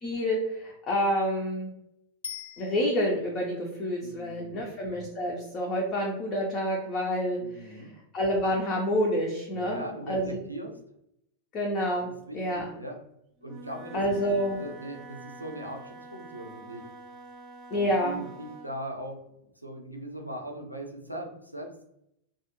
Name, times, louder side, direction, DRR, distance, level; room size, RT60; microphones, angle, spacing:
voice 1, 0.0-1.7 2.6-7.8 8.1-10.4 11.5-12.1 12.3-12.6 13.9-14.6 17.7-18.2, equal, 35° left, -1 dB, 0.6 m, -28 dB
Bicycle bell, 2.2-3.4 12.4-12.5, left 7 dB, 70° left, 0.3 m, -42 dB
voice 2, 4.0-4.7 7.4-7.9 9.5-10.8 11.9-12.0 12.2-13.0 13.4-14.0 14.5-16.9 17.7-19.2 19.6-21.8, right 1 dB, 90° right, 1 dB, 0.5 m, -39 dB
Wind instrument woodwind instrument, 13.4-18.8, right 2 dB, 25° right, 0.7 m, -47 dB
2.4 x 2.3 x 2.9 m, 0.79 s
figure-of-eight pair, 90°, 0 cm